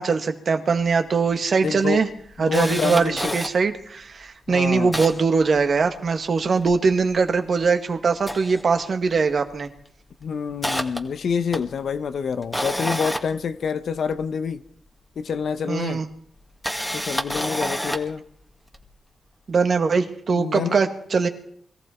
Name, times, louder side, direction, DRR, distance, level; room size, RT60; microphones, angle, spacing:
voice 1, 0.0-2.1 2.4-9.7 15.7-16.1 19.5-21.3, right 5 dB, 60° right, 1.9 m, -21 dB
Camera, 0.9-1.0 1.3-1.4 1.8-3.5 4.1-4.2 4.5-6.1 6.4-7.7 8.1-9.2 9.5-9.8 10.2-14.2 15.3-15.4 16.4-18.2 18.7-18.9, equal, 5° left, 2.1 m, -30 dB
voice 2, 1.6-2.0 2.4-3.4 4.5-4.9 10.2-14.6 15.2-16.0 16.9-18.2 20.3-20.8, left 6 dB, 75° left, 1.0 m, -27 dB
22.0 x 14.5 x 4.6 m
cardioid pair, 65°, 0 cm